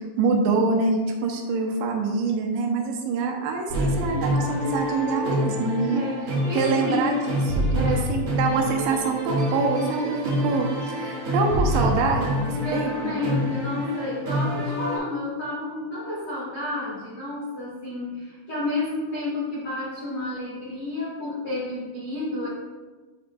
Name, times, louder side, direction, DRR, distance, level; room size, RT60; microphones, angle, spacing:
voice 1, 0.0-6.0 6.5-13.1, right 4 dB, 85° right, 1 dB, 3.1 m, -25 dB
sound 1, 3.7-15.0, equal, 65° right, 3.4 m, -26 dB
voice 2, 5.9-7.1 7.8-8.1 12.6-22.5, left 2 dB, 85° left, -10 dB, 1.1 m, -30 dB
9.1 x 5.1 x 2.3 m, 1.3 s
omnidirectional pair, 5.2 m